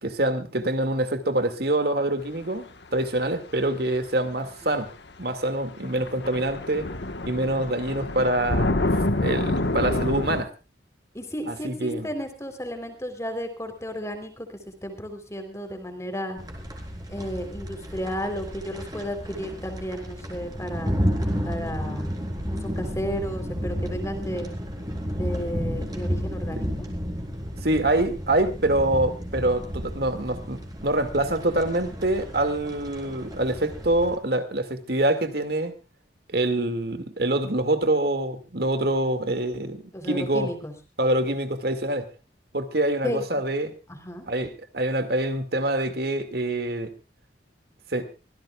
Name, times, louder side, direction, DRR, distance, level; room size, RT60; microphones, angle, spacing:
voice 1, 0.0-2.7 2.9-4.9 5.2-6.9 7.2-8.7 9.2-10.5 11.5-12.1 26.5-26.6 27.6-35.7 36.3-40.5 41.0-42.1 42.5-43.7 44.3-46.9 47.9-48.1, right 1 dB, 55° right, 2.2 m, -25 dB
sound 1, 4.3-4.4 5.5-5.6 5.8-10.4, left 2 dB, 65° left, 1.4 m, -27 dB
voice 2, 11.1-16.4 17.1-20.9 21.4-22.1 22.6-24.5 25.2-26.8 39.9-40.7 43.0-43.4 43.9-44.3, equal, 15° left, 3.6 m, -33 dB
sound 2, 16.4-34.1, equal, 20° right, 4.1 m, -32 dB
25.0 x 16.5 x 2.4 m
head